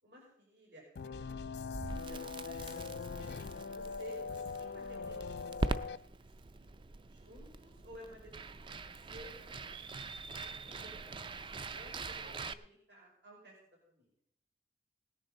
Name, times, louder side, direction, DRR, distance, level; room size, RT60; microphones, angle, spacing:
voice 1, 0.0-1.4 1.9-6.7 7.1-10.0 10.4-13.6 13.9-14.1, right 1 dB, 80° right, -4 dB, 5.5 m, -55 dB
sound 1, 1.0-6.0, left 5 dB, 65° left, 0.4 m, -42 dB
Crackle, 1.7-12.5, right 3 dB, 25° right, 0.4 m, -43 dB
18.5 x 10.0 x 4.0 m, 0.71 s
head